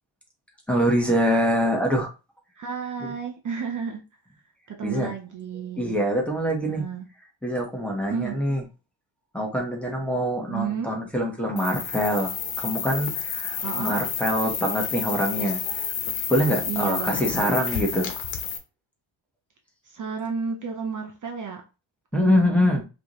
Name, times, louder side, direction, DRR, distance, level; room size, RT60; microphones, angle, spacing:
voice 1, 0.7-2.1 4.8-5.1 5.8-6.8 7.4-8.6 9.3-12.3 12.6-15.6 16.3-18.1 22.1-22.8, equal, 5° left, -2 dB, 1.3 m, -24 dB
voice 2, 2.6-4.0 4.7-6.0 6.7-7.1 8.1-8.4 10.5-10.9 13.6-14.0 16.6-17.6 19.8-21.6 22.1-22.8, right 7 dB, 40° right, 3 dB, 0.8 m, -32 dB
sound 1, 11.6-18.6, left 7 dB, 85° left, 1.1 m, -30 dB
5.2 x 3.2 x 3.0 m, 0.29 s
cardioid pair, 140°, 46 cm